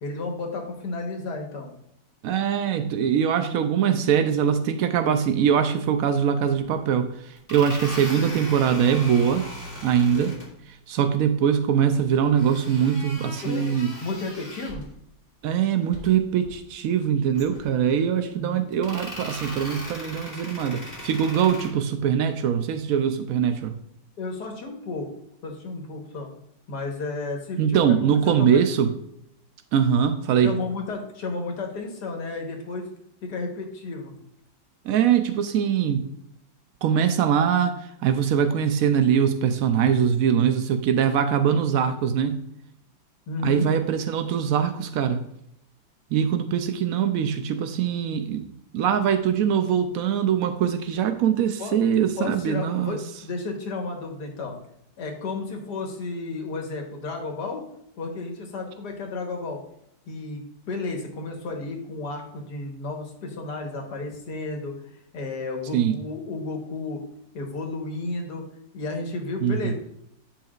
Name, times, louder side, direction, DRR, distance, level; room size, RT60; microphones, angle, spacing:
voice 1, 0.0-1.7 10.1-10.3 13.4-13.6 14.0-14.8 18.3-18.6 24.2-25.1 25.4-26.3 26.7-28.6 30.4-32.9 33.2-34.1 43.3-43.7 51.6-51.8 52.2-54.5 55.0-57.6 58.0-59.6 60.1-67.0 67.3-68.5 68.7-69.7, left 3 dB, 60° left, 1 dB, 1.8 m, -32 dB
voice 2, 2.2-9.5 9.8-10.3 10.9-13.9 15.4-23.8 27.6-28.9 29.7-30.5 34.8-36.0 36.8-42.4 43.4-45.3 46.1-48.4 48.7-53.0 65.7-66.0 69.4-69.7, right 8 dB, 90° right, 8 dB, 0.7 m, -22 dB
sound 1, 6.6-6.7 7.4-10.5 12.4-14.9 15.8-16.1 16.4-16.6 17.3-18.0 18.7-21.7, left 1 dB, 10° right, 2.1 m, -38 dB
10.0 x 5.7 x 2.4 m, 0.77 s
omnidirectional pair, 2.1 m